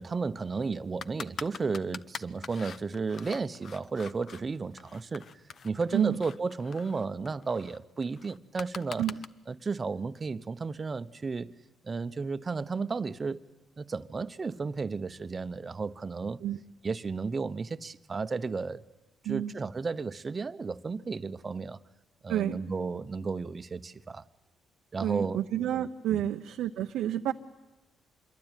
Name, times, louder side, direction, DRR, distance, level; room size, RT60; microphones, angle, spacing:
voice 1, 0.0-9.1 9.5-11.5 11.8-13.4 13.8-16.4 16.8-18.8 19.2-21.8 22.2-24.3 24.9-25.4 26.1-26.2, right 4 dB, 30° right, 1.0 m, -33 dB
sound 1, 1.0-4.4 4.8-9.3, left 6 dB, 55° left, 0.9 m, -44 dB
voice 2, 25.0-27.3, right 11 dB, 85° right, 0.9 m, -30 dB
26.5 x 22.5 x 9.2 m
cardioid pair, 90°, 0 cm